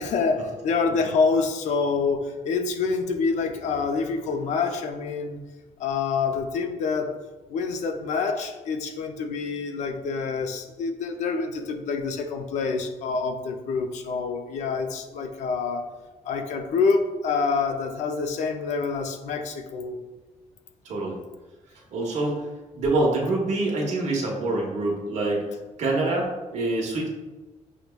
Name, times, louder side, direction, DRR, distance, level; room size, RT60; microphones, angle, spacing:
voice 1, 0.0-5.4 5.8-7.1 7.5-15.9 16.2-20.0, left 4 dB, 65° left, 6 dB, 0.4 m, -26 dB
voice 2, 20.8-21.2 21.9-22.5 22.7-25.5 25.8-27.1, right 2 dB, 65° right, -1 dB, 0.9 m, -25 dB
5.9 x 2.1 x 2.2 m, 1.2 s
cardioid pair, 170°, 13 cm